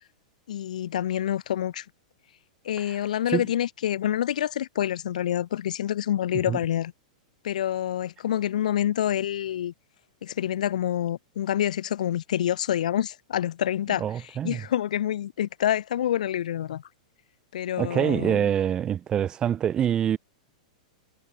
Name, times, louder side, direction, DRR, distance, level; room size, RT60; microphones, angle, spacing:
voice 1, 0.5-1.8 2.6-6.9 7.4-9.7 10.2-14.0 14.4-16.8 17.5-18.4, left 11 dB, 75° left, 5.0 m, -27 dB
voice 2, 14.0-14.6 17.8-20.2, right 9 dB, 20° right, 2.4 m, -25 dB
supercardioid pair, 155°, 4 cm